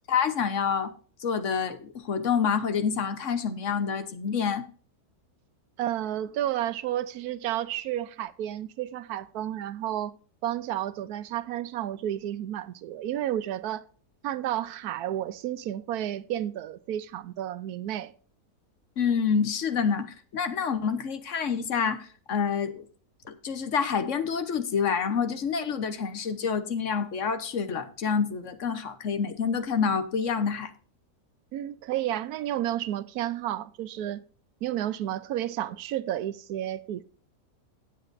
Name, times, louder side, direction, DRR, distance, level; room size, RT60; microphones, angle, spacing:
voice 1, 0.1-0.9 1.2-4.7 19.0-22.8 23.3-30.7, left 6 dB, 60° left, 1.2 m, -27 dB
voice 2, 5.8-10.2 10.4-13.8 14.2-18.1 31.5-34.2 34.6-37.0, right 12 dB, 90° right, 1.2 m, -31 dB
17.0 x 7.7 x 2.6 m
omnidirectional pair, 1.6 m